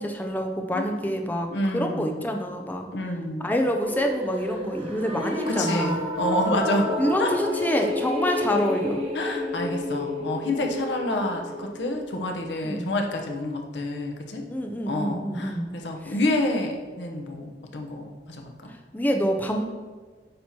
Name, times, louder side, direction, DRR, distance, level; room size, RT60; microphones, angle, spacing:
voice 1, 0.0-2.9 3.4-6.0 7.0-9.0 12.6-12.9 14.5-15.7 16.0-16.2 18.7-19.7, equal, 10° left, 3 dB, 0.5 m, -27 dB
voice 2, 1.5-2.1 2.9-3.5 5.5-6.9 7.2-7.3 9.1-14.4 14.9-18.7, left 1 dB, 80° left, 2 dB, 1.0 m, -28 dB
sound 1, 3.8-12.1, left 1 dB, 35° right, 1.6 m, -31 dB
8.7 x 3.0 x 5.9 m, 1.4 s
head